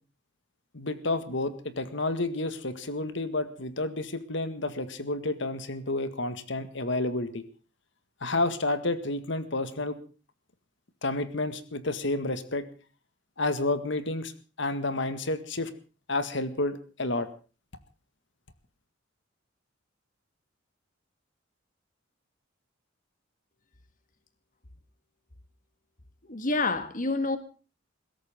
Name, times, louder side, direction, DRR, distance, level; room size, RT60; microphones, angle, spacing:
voice 1, 0.7-7.4 8.2-10.0 11.0-12.7 13.4-14.3 14.6-15.7 16.1-17.3, left 2 dB, 65° left, 1.9 m, -30 dB
voice 2, 26.3-27.4, left 3 dB, 45° left, 1.8 m, -27 dB
21.5 x 17.0 x 3.7 m
head